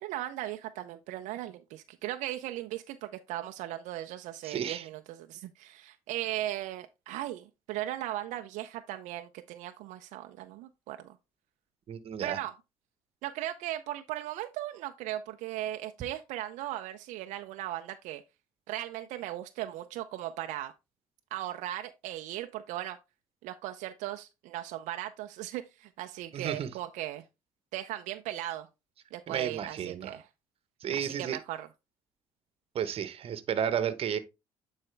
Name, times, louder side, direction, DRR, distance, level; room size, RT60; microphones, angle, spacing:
voice 1, 0.0-11.2 12.2-12.5 13.2-18.2 18.7-20.7 21.3-23.0 23.4-27.2 27.7-28.7 29.1-30.3 31.0-31.7, right 14 dB, 80° right, 0.5 m, -37 dB
voice 2, 4.4-4.9 11.9-12.4 26.3-26.7 29.3-30.2 30.8-31.4 32.7-34.2, right 8 dB, 50° right, 1.0 m, -32 dB
9.0 x 4.3 x 3.3 m
cardioid pair, 100°, 12 cm